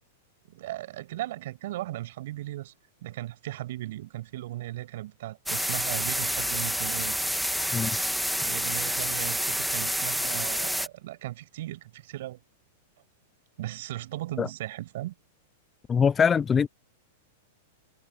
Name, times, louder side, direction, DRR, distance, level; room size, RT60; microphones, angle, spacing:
voice 1, 0.5-2.7 3.0-7.2 8.4-12.4 13.6-15.1, right 15 dB, 65° right, 6.1 m, -37 dB
sound 1, 5.5-10.9, equal, ahead, 1.8 m, -28 dB
voice 2, 15.9-16.7, left 6 dB, 20° left, 0.6 m, -23 dB
hypercardioid pair, 130°, 0 cm